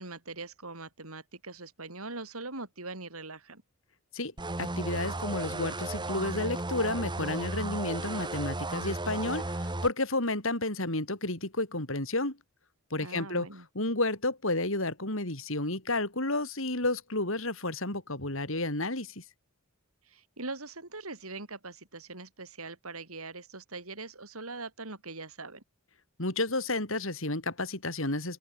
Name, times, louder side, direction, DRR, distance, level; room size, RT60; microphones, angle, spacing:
voice 1, 0.0-3.6 13.0-13.7 20.1-25.6, right 3 dB, 80° right, 6.2 m, -42 dB
sound 1, 4.4-9.9, right 2 dB, 20° right, 1.4 m, -34 dB
voice 2, 4.6-12.4 12.9-13.5 13.8-19.2 26.2-28.4, left 2 dB, 65° left, 5.4 m, -31 dB
open air
head